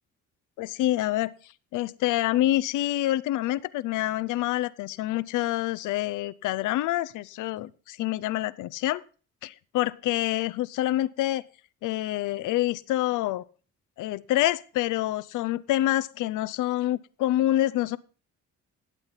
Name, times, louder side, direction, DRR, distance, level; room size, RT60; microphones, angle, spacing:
voice 1, 0.6-1.3 1.7-9.0 9.4-11.4 11.8-13.4 14.0-18.0, left 15 dB, 85° left, 16 dB, 0.6 m, -27 dB
12.0 x 8.5 x 5.6 m, 0.38 s
cardioid pair, 90°, 30 cm